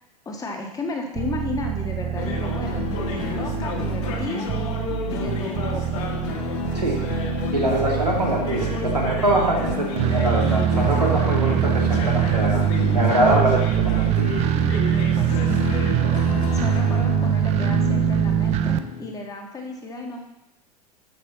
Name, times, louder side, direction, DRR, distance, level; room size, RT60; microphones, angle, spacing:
voice 1, 0.2-2.8 3.1-4.5 5.1-6.1 15.2-15.6 16.0-16.2 16.5-20.3, left 2 dB, 15° left, 2 dB, 1.6 m, -33 dB
sound 1, 1.2-18.8, right 10 dB, 30° right, 0.5 m, -23 dB
sound 2, 2.2-19.1, left 6 dB, 50° left, 1.6 m, -30 dB
voice 2, 7.5-12.7 12.9-14.4, right 1 dB, 85° right, -2 dB, 2.3 m, -23 dB
13.5 x 5.8 x 4.1 m, 0.95 s
figure-of-eight pair, 85°, 20 cm